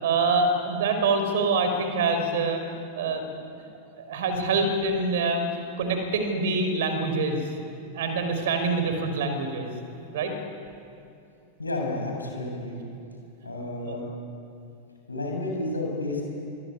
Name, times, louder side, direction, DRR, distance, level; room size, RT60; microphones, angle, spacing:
voice 1, 0.0-2.6 2.9-3.3 4.0-5.4 5.8-7.4 7.9-9.7 10.1-10.3 13.8-13.9, right 3 dB, 55° right, 7 dB, 4.9 m, -25 dB
voice 2, 11.6-12.8 13.4-14.0 15.1-16.2, left 2 dB, 80° left, 0 dB, 7.7 m, -31 dB
25.0 x 24.0 x 9.9 m, 2.6 s
figure-of-eight pair, 90°, 0 cm